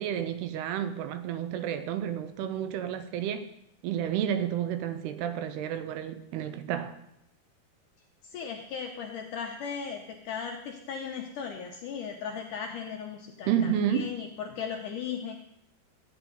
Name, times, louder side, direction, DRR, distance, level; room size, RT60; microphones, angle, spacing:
voice 1, 0.0-3.5 3.8-7.0 13.5-14.1, right 9 dB, 85° right, 2.7 m, -30 dB
voice 2, 8.2-15.3, left 7 dB, 75° left, 1.9 m, -37 dB
14.0 x 9.1 x 3.9 m
omnidirectional pair, 4.7 m